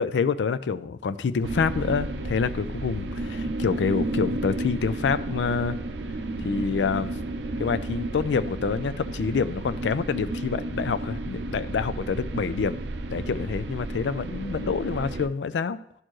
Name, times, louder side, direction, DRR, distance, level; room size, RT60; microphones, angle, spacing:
voice 1, 0.0-5.8 6.4-7.1 7.6-12.8 13.1-15.8, left 5 dB, 90° left, 15 dB, 0.4 m, -27 dB
sound 1, 1.4-15.3, right 2 dB, 85° right, 0.5 m, -32 dB
11.0 x 4.4 x 3.1 m, 0.71 s
head